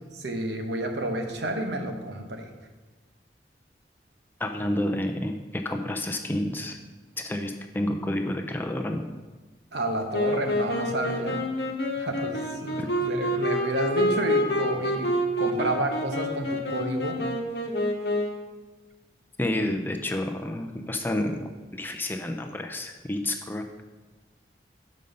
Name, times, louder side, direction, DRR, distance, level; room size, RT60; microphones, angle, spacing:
voice 1, 0.1-2.5 9.7-11.4 12.0-15.1 15.4-17.2, right 1 dB, 70° right, 4 dB, 1.0 m, -30 dB
voice 2, 4.4-6.8 7.2-9.0 12.8-12.9 19.4-23.7, left 1 dB, 10° left, 4 dB, 0.5 m, -30 dB
Wind instrument woodwind instrument, 10.1-18.5, left 1 dB, 65° left, 1.0 m, -27 dB
5.5 x 5.3 x 6.6 m, 1.2 s
head